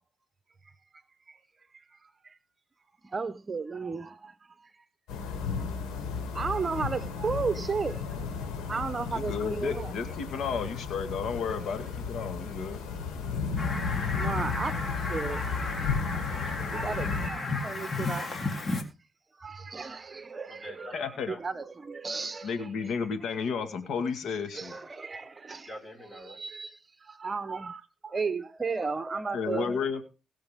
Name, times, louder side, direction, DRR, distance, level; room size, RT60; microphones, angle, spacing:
voice 1, 2.0-2.4 3.0-4.7 6.3-8.0 8.7-9.9 14.2-15.7 16.5-18.4 18.7-18.8 19.4-22.9 24.5-25.7 26.2-29.8, right 4 dB, 30° right, 1.1 m, -34 dB
sound 1, 5.1-17.3, left 5 dB, 90° left, 4.0 m, -34 dB
voice 2, 9.1-12.8 20.9-21.3 22.4-24.7 29.3-30.0, left 6 dB, 70° left, 2.0 m, -32 dB
Fowl, 13.6-18.8, left 3 dB, 40° left, 3.5 m, -34 dB
voice 3, 20.5-21.4 25.6-26.4 29.5-29.6, equal, 20° left, 5.2 m, -44 dB
22.0 x 7.4 x 3.7 m
cardioid pair, 90°, 0 cm